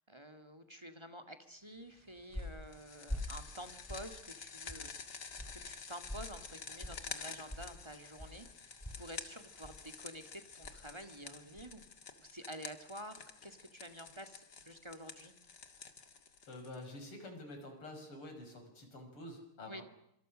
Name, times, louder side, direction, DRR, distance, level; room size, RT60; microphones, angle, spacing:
voice 1, 0.1-4.9 5.5-11.8 12.2-15.3 19.7-19.8, equal, 15° right, 9 dB, 2.0 m, -49 dB
sound 1, 1.8-11.9, left 1 dB, 5° left, 6.1 m, -48 dB
sound 2, 2.7-17.0, left 5 dB, 50° left, 2.5 m, -50 dB
voice 2, 16.5-19.8, left 1 dB, 85° left, 5 dB, 6.8 m, -48 dB
26.0 x 26.0 x 6.4 m, 0.78 s
omnidirectional pair, 2.4 m